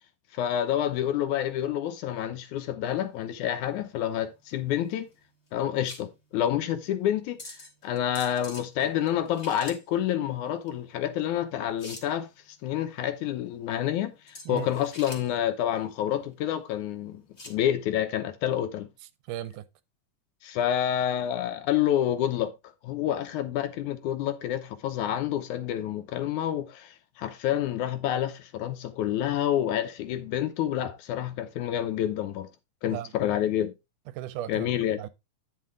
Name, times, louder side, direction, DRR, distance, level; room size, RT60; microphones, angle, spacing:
voice 1, 0.3-5.1 5.5-7.6 7.8-12.3 12.6-18.9 20.4-22.5 22.8-32.5 32.8-33.7 34.5-35.0, left 11 dB, 80° left, 2.1 m, -28 dB
sound 1, 2.9-17.6, left 2 dB, 30° left, 1.3 m, -48 dB
voice 2, 19.3-19.7 32.9-33.1 34.1-34.7 35.0-35.1, right 13 dB, 80° right, 2.1 m, -36 dB
9.4 x 5.8 x 3.5 m
omnidirectional pair, 3.7 m